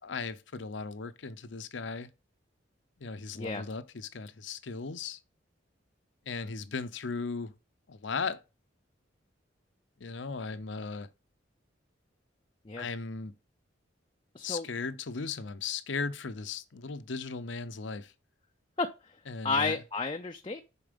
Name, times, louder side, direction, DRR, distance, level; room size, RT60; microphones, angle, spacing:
voice 1, 0.0-2.1 3.0-5.2 6.3-7.5 7.9-8.4 10.0-11.1 12.8-13.3 14.4-18.1 19.3-19.8, left 4 dB, 70° left, 0.7 m, -37 dB
voice 2, 14.3-14.7 18.8-18.9 19.4-20.6, left 4 dB, 25° left, 0.5 m, -31 dB
6.9 x 4.6 x 5.2 m
head